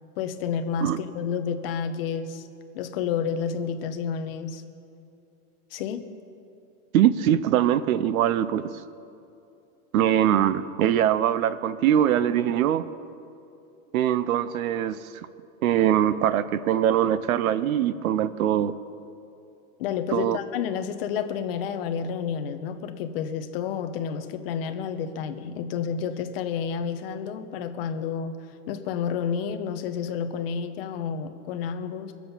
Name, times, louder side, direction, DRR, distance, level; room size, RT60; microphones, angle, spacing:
voice 1, 0.2-2.5 2.7-4.6 5.7-6.1 19.8-32.1, left 7 dB, 45° left, 8 dB, 0.9 m, -30 dB
voice 2, 6.9-8.7 9.9-12.9 13.9-15.0 15.6-18.7 20.1-20.4, right 10 dB, 85° right, 15 dB, 0.7 m, -22 dB
22.5 x 7.6 x 5.5 m, 2.7 s
supercardioid pair, 170°, 41 cm